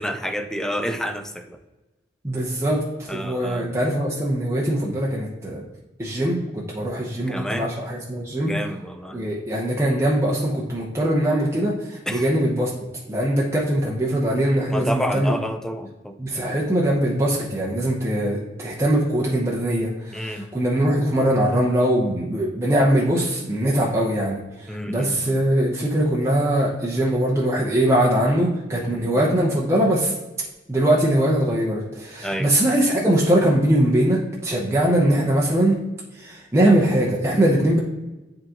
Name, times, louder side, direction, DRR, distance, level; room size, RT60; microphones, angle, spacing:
voice 1, 0.0-1.6 3.1-3.7 7.3-7.7 8.4-9.3 12.1-12.3 14.7-16.2 20.1-20.5 24.7-25.4 29.0-29.2 32.2-32.5, equal, 5° left, 7 dB, 0.4 m, -29 dB
voice 2, 2.2-5.6 6.0-8.5 9.1-12.7 13.1-15.4 16.2-30.1 30.7-35.8 36.2-37.8, right 1 dB, 15° right, -4 dB, 0.8 m, -21 dB
10.0 x 3.8 x 2.9 m, 1.1 s
head